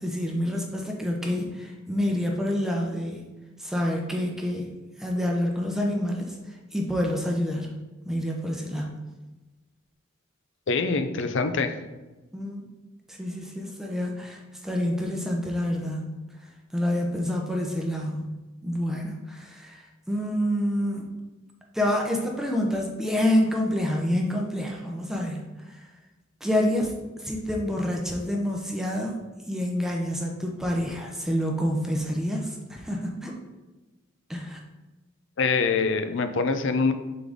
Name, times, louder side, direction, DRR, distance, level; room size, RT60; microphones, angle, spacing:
voice 1, 0.0-3.2 3.6-4.7 5.0-6.3 6.7-7.7 8.0-8.9 12.3-12.7 13.1-16.2 16.7-18.2 18.6-21.0 21.7-25.4 25.7-25.9 26.4-26.9 27.2-29.2 29.5-33.4 34.3-34.6, left 1 dB, ahead, 0 dB, 0.7 m, -27 dB
voice 2, 10.7-11.8 35.4-36.9, left 4 dB, 65° left, 8 dB, 0.5 m, -24 dB
6.9 x 3.9 x 3.6 m, 1.1 s
head